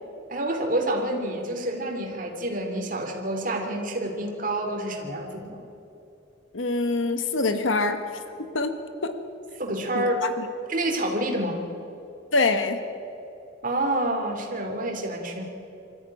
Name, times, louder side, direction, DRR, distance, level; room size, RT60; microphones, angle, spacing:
voice 1, 0.3-5.6 9.6-10.2 10.7-11.6 13.6-15.4, right 1 dB, 45° right, 2 dB, 3.1 m, -28 dB
voice 2, 6.5-8.0 8.5-8.7 9.0-9.1 9.9-10.5 12.3-12.8, left 3 dB, 80° left, 9 dB, 1.6 m, -24 dB
23.5 x 14.5 x 10.0 m, 2.7 s
head